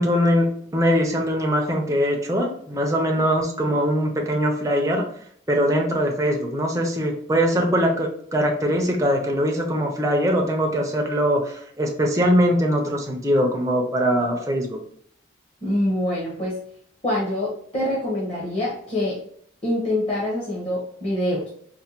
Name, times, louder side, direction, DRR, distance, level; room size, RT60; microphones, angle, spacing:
voice 1, 0.0-5.1 5.5-14.8, equal, 15° right, 1 dB, 0.4 m, -22 dB
voice 2, 15.6-16.6 17.0-19.2 19.6-21.5, left 1 dB, 30° left, -6 dB, 0.9 m, -25 dB
4.3 x 2.1 x 2.8 m, 0.63 s
head